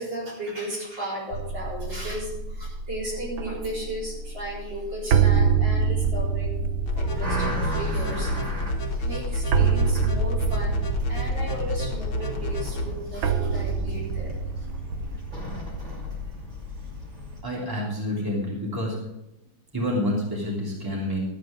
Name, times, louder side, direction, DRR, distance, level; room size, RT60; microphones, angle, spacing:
voice 1, 0.0-6.6 6.9-8.4 8.9-10.8 11.1-14.7, right 1 dB, 65° right, -5 dB, 4.8 m, -35 dB
sound 1, 1.3-16.2, right 6 dB, 80° right, 1.5 m, -27 dB
sound 2, 6.9-12.8, left 1 dB, 70° left, 2.0 m, -30 dB
sound 3, 6.9-17.4, left 1 dB, 35° right, 2.8 m, -35 dB
voice 2, 17.4-19.0 19.7-21.2, left 1 dB, 10° right, -4 dB, 3.0 m, -28 dB
12.5 x 9.0 x 5.2 m, 0.93 s
omnidirectional pair, 2.2 m